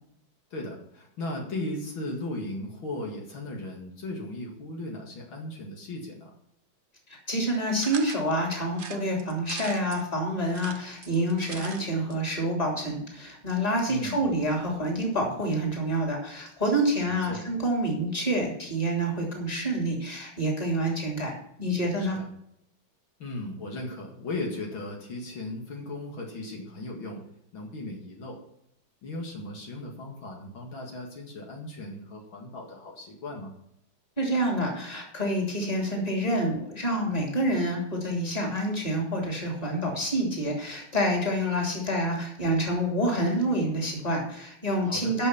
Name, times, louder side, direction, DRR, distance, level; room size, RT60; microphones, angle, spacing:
voice 1, 0.5-6.3 13.9-14.2 17.1-17.4 22.0-22.3 23.2-27.2 27.5-28.4 29.0-33.5 44.8-45.2, left 2 dB, 70° left, 0 dB, 2.7 m, -37 dB
voice 2, 7.1-22.2 34.2-45.3, right 1 dB, 15° left, 0 dB, 2.9 m, -27 dB
sound 1, 7.8-8.2 8.7-10.0 10.5-11.8 12.1-12.2 12.4-12.5, right 5 dB, 55° right, 0.5 m, -40 dB
10.5 x 6.3 x 7.0 m, 0.74 s
omnidirectional pair, 2.3 m